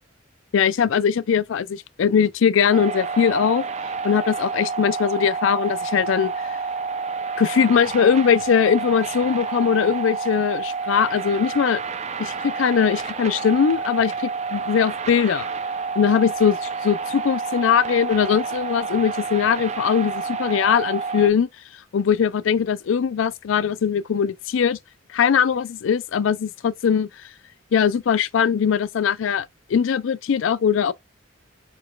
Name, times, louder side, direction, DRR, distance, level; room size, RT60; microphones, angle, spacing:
voice 1, 0.5-3.7 4.0-6.6 7.4-11.8 12.2-15.5 16.0-21.5 21.9-24.8 25.1-27.1 27.7-30.9, left 7 dB, 85° left, 0.4 m, -21 dB
sound 1, 2.7-21.3, right 5 dB, 35° right, 0.5 m, -29 dB
4.5 x 4.0 x 2.3 m
head